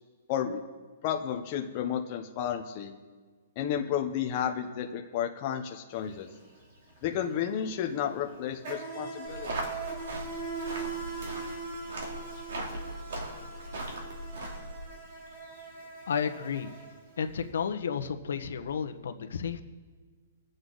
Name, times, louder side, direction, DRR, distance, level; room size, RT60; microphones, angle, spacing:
voice 1, 0.3-0.6 1.0-2.9 3.6-6.3 7.0-9.7, left 9 dB, 25° left, 2 dB, 0.7 m, -32 dB
Insect, 5.9-6.1 6.4-17.4, right 4 dB, 40° right, 3.2 m, -41 dB
sound 1, 9.2-14.8, right 1 dB, 65° right, 2.7 m, -39 dB
voice 2, 16.1-16.7 17.2-19.6, left 7 dB, 70° left, 7 dB, 1.0 m, -32 dB
22.5 x 7.9 x 3.9 m, 1.5 s
hypercardioid pair, 180°, 0 cm